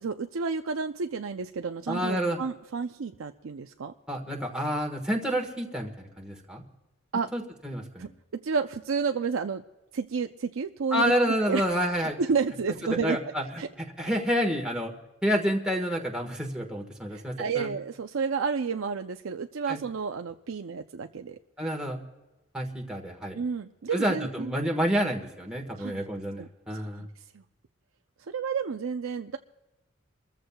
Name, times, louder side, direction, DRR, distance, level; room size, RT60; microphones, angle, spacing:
voice 1, 0.0-3.9 7.1-7.3 8.0-9.6 9.9-11.1 11.5-11.6 12.2-13.2 13.6-13.7 17.1-21.4 23.3-24.5 25.8-26.0 26.4-26.5 26.7-27.1 28.3-29.4, right 5 dB, 90° right, 6 dB, 0.5 m, -31 dB
voice 2, 1.9-2.4 4.1-6.6 7.3-8.1 10.9-12.2 13.0-13.4 13.8-14.9 15.2-17.7 19.7-19.8 21.6-22.0 22.5-23.4 23.9-27.1, equal, 5° right, 0 dB, 1.4 m, -29 dB
28.5 x 14.5 x 2.3 m, 1.1 s
head